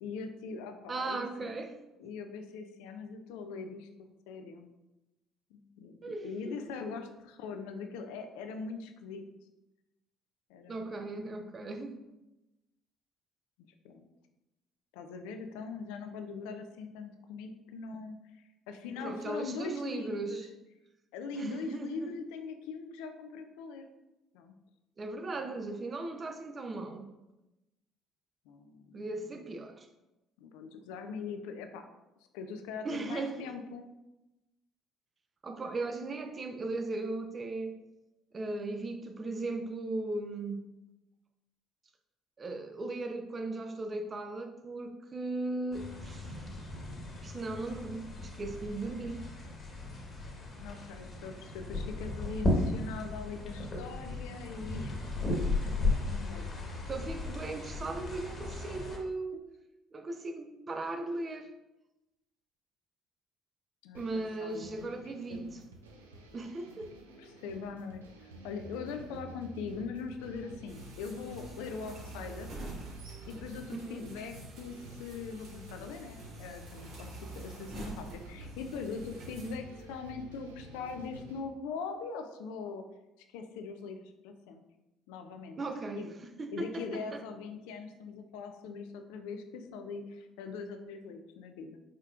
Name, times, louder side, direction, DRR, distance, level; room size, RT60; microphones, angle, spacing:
voice 1, 0.0-1.6 2.0-3.9 4.3-4.7 5.5-6.0 6.2-9.2 10.5-11.4 13.8-14.1 14.9-20.4 21.1-23.9 24.3-24.6 25.4-25.5 28.5-29.0 29.3-29.4 30.4-31.9 32.3-33.9 50.6-54.9 55.2-56.6 59.3-59.4 63.8-64.9 65.3-65.4 67.2-72.5 73.3-82.8 83.3-84.6 85.1-85.6 85.9-86.1 86.5-91.8, left 5 dB, 70° left, 7 dB, 0.4 m, -42 dB
voice 2, 0.9-1.7 6.0-6.6 10.7-12.0 19.0-20.5 21.3-22.1 25.0-27.1 28.9-29.9 32.8-33.5 35.4-37.8 38.3-40.6 42.4-46.5 47.2-49.2 56.9-59.4 59.9-61.5 63.9-65.6 66.3-66.9 73.7-74.1 85.6-87.2, right 2 dB, 35° right, 6 dB, 0.6 m, -37 dB
sound 1, 45.7-59.0, left 2 dB, 35° left, 1.2 m, -35 dB
sound 2, 63.9-81.4, right 2 dB, 85° right, 0.5 m, -50 dB
sound 3, 70.7-79.6, right 2 dB, 60° right, 1.3 m, -47 dB
4.9 x 4.2 x 2.4 m, 0.98 s
hypercardioid pair, 55°, 0 cm